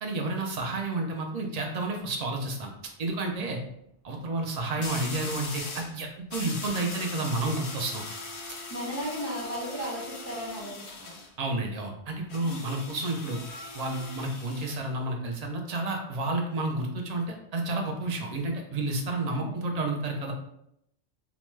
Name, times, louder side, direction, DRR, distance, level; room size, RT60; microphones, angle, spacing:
voice 1, 0.0-2.7 3.0-3.6 4.0-8.0 11.4-13.4 13.7-20.3, right 2 dB, 60° right, 1 dB, 0.4 m, -31 dB
Coffee Grinder Several-grinding-durations, 1.9-2.0 4.8-5.9 6.3-11.3 12.3-14.8, left 3 dB, 70° left, 0.9 m, -40 dB
voice 2, 8.7-11.2 19.3-19.6, equal, 20° left, -6 dB, 0.4 m, -35 dB
2.9 x 2.2 x 3.1 m, 0.76 s
omnidirectional pair, 1.2 m